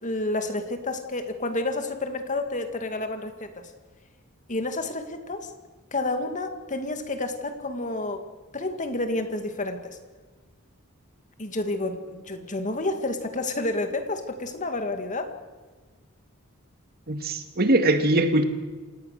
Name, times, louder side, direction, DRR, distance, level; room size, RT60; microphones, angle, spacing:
voice 1, 0.0-3.7 4.5-5.5 5.9-8.2 8.5-10.0 11.4-15.3, left 2 dB, 35° left, 7 dB, 2.1 m, -30 dB
voice 2, 17.1-18.4, right 1 dB, 45° right, 7 dB, 2.0 m, -21 dB
27.5 x 18.0 x 6.7 m, 1.3 s
head